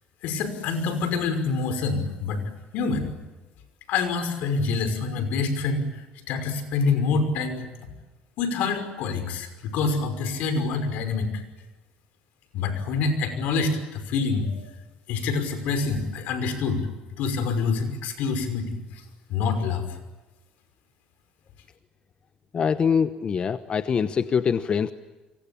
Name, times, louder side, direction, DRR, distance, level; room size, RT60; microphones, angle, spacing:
voice 1, 0.2-2.4 2.7-3.1 3.9-7.7 8.4-11.4 12.5-14.6 15.1-16.8 17.2-18.8 19.3-19.9, left 4 dB, 75° left, 9 dB, 5.7 m, -26 dB
voice 2, 22.5-24.9, left 6 dB, 40° left, 11 dB, 1.0 m, -24 dB
28.5 x 24.0 x 8.8 m, 1.2 s
cardioid pair, 105°, 3 cm